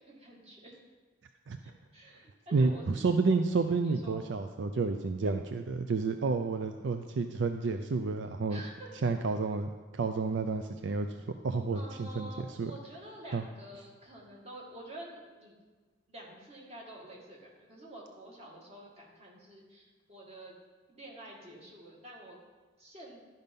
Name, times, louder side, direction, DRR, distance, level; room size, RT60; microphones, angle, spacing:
voice 1, 0.1-0.8 1.6-3.1 3.8-4.2 8.5-8.9 11.7-15.6 16.1-20.5 20.9-22.4 22.8-23.2, right 1 dB, 35° right, -2 dB, 1.9 m, -49 dB
voice 2, 2.5-8.6 9.0-12.7 13.3-13.4, right 4 dB, 70° right, 7 dB, 0.4 m, -30 dB
12.0 x 5.4 x 5.3 m, 1.4 s
head